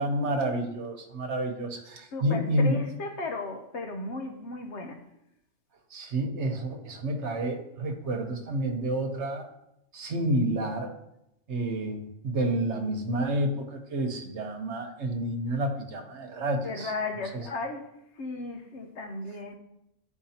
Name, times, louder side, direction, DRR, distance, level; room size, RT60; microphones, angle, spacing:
voice 1, 0.0-2.8 5.9-9.5 9.9-10.9 11.5-16.9 17.3-17.5, right 1 dB, 60° right, 1.2 m, -29 dB
voice 2, 2.1-5.0 16.6-19.5, left 3 dB, 60° left, 1.0 m, -35 dB
10.0 x 4.5 x 2.8 m
omnidirectional pair, 1.4 m